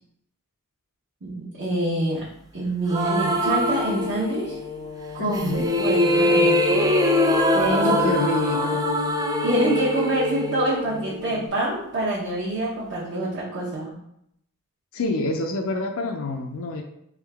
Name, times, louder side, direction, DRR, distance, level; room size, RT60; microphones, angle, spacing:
voice 1, 1.2-2.2 2.5-4.5 5.1-6.8 7.5-7.8 9.4-13.9, right 1 dB, 50° right, -7 dB, 1.0 m, -26 dB
sound 1, 2.9-4.6 5.3-11.4, equal, 15° right, 0.4 m, -23 dB
sound 2, 3.5-11.5, left 5 dB, 85° left, 0.9 m, -32 dB
voice 2, 5.2-5.7 7.8-8.9 14.9-16.8, left 2 dB, 65° left, 2 dB, 0.5 m, -27 dB
3.6 x 3.6 x 3.4 m, 0.75 s
head